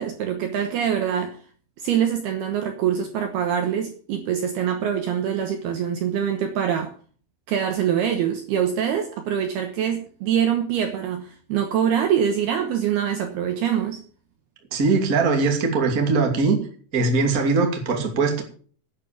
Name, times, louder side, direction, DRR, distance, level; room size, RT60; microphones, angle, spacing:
voice 1, 0.0-1.4 1.8-6.9 7.5-14.0, right 9 dB, 70° right, 5 dB, 2.6 m, -24 dB
voice 2, 14.7-16.6 16.9-18.4, right 4 dB, 30° right, 3 dB, 1.7 m, -21 dB
11.0 x 9.1 x 6.9 m, 0.43 s
omnidirectional pair, 5.7 m